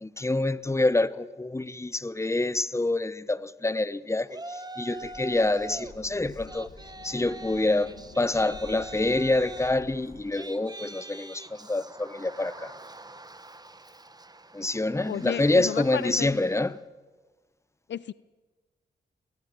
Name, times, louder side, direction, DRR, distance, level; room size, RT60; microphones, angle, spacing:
voice 1, 0.0-6.7 7.0-12.7 14.5-16.8, left 2 dB, 15° left, 0.9 m, -27 dB
Yell, 4.3-5.9 6.3-16.7, right 2 dB, 20° right, 1.3 m, -44 dB
sound 1, 5.0-10.2, left 2 dB, 80° left, 6.5 m, -49 dB
voice 2, 15.1-16.3 17.9-18.1, left 10 dB, 65° left, 0.5 m, -32 dB
21.0 x 17.5 x 7.2 m
supercardioid pair, 45°, 20 cm